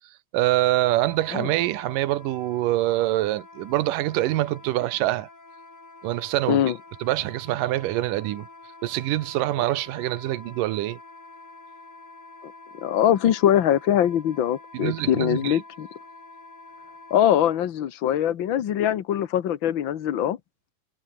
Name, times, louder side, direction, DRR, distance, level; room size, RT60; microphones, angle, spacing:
voice 1, 0.3-5.3 6.0-6.6 7.0-8.5 8.8-11.0 14.7-15.6, right 16 dB, 75° right, 2.5 m, -25 dB
Wind instrument woodwind instrument, 0.8-17.6, left 3 dB, 35° left, 7.6 m, -47 dB
voice 2, 12.4-15.9 17.1-20.4, left 10 dB, 80° left, 1.1 m, -22 dB
omnidirectional pair, 4.0 m